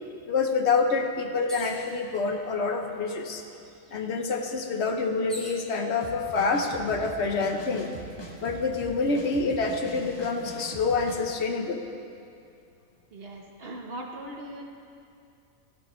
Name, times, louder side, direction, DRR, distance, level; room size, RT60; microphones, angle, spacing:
voice 1, 0.3-3.4 3.9-7.9 8.4-11.8, left 4 dB, 55° left, 5 dB, 1.1 m, -27 dB
sound 1, 1.5-1.9 2.8-2.9 3.2-5.6 6.4-6.9, equal, ahead, 2.2 m, -44 dB
sound 2, 6.0-11.2, right 1 dB, 20° left, 1.3 m, -41 dB
voice 2, 13.1-14.7, right 1 dB, 50° right, 1 dB, 1.2 m, -39 dB
14.5 x 12.0 x 3.1 m, 2.5 s
omnidirectional pair, 1.4 m